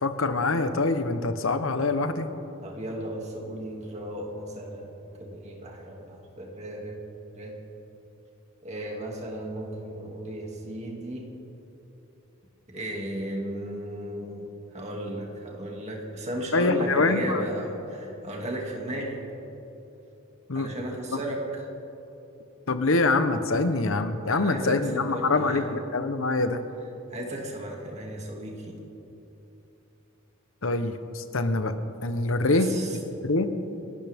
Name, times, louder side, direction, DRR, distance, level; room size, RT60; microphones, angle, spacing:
voice 1, 0.0-2.3 16.5-17.4 20.5-20.7 22.7-26.6 30.6-31.7 32.0-32.7 33.2-33.5, left 3 dB, 60° left, 9 dB, 1.0 m, -25 dB
voice 2, 2.6-7.0 7.3-7.6 8.6-11.3 12.7-19.2 20.5-21.6 24.2-25.8 27.1-28.8 32.5-33.0, right 1 dB, 30° right, -1 dB, 2.4 m, -35 dB
28.5 x 12.0 x 3.6 m, 3.0 s
head